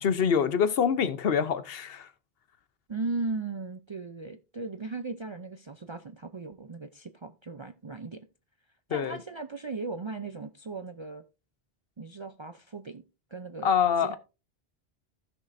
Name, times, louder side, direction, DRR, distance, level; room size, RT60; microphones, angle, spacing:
voice 1, 0.0-2.1 8.9-9.2 13.6-14.2, left 7 dB, 65° left, 0.9 m, -25 dB
voice 2, 2.9-8.3 8.9-11.2 12.0-13.0 13.3-13.7 14.0-14.1, right 3 dB, 40° right, 0.4 m, -37 dB
15.5 x 6.5 x 2.6 m
omnidirectional pair, 1.1 m